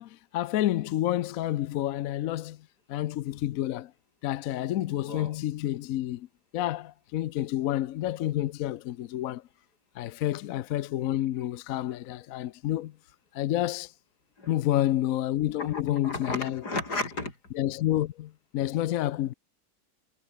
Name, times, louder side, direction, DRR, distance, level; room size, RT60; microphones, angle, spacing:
voice 1, 0.0-2.6 2.9-3.9 4.2-6.3 6.5-9.4 10.0-12.9 13.3-13.9 14.5-16.6 17.5-19.3, left 13 dB, 70° left, 1.0 m, -29 dB
voice 2, 5.0-5.4 14.4-14.5 15.6-17.3, left 2 dB, 90° left, 5.9 m, -34 dB
omnidirectional pair, 1.7 m